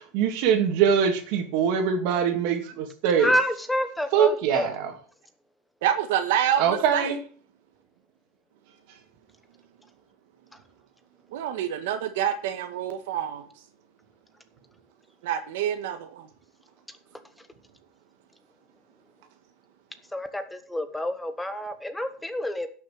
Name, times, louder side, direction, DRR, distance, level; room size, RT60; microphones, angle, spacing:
voice 1, 0.1-3.3 4.1-4.9 6.6-7.2, right 7 dB, 60° right, 5 dB, 2.6 m, -23 dB
voice 2, 3.2-4.7 20.1-22.7, equal, 5° left, 9 dB, 1.1 m, -28 dB
voice 3, 5.8-7.1 11.3-13.5 15.2-16.3, right 10 dB, 85° right, 7 dB, 1.7 m, -27 dB
11.5 x 6.4 x 6.6 m, 0.43 s
supercardioid pair, 140°, 0 cm